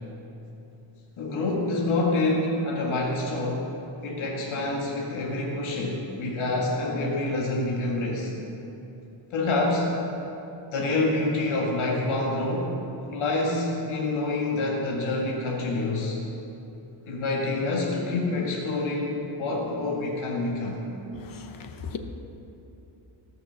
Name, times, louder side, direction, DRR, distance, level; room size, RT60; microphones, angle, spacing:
voice 1, 1.2-3.7 4.0-8.3 9.3-10.0 10.7-12.7 13.1-16.2 17.1-20.8, left 2 dB, 90° left, -2 dB, 2.0 m, -27 dB
voice 2, 21.1-22.0, left 7 dB, 45° left, 7 dB, 0.9 m, -38 dB
18.0 x 6.6 x 7.0 m, 3.0 s
wide cardioid pair, 175°, 47 cm